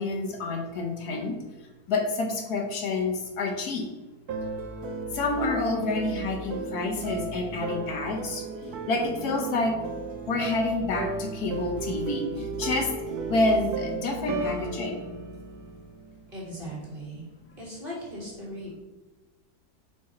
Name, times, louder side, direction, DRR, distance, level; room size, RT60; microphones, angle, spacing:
voice 1, 0.0-1.4 1.9-3.9 5.1-8.4 8.9-9.7 10.3-12.9 13.3-15.1, left 2 dB, 70° left, 1 dB, 1.3 m, -28 dB
sound 1, 4.3-16.4, right 3 dB, 70° right, 1.2 m, -34 dB
voice 2, 16.3-17.2 17.6-18.7, equal, 30° right, -5 dB, 1.9 m, -38 dB
4.7 x 4.7 x 4.3 m, 1.2 s
omnidirectional pair, 1.8 m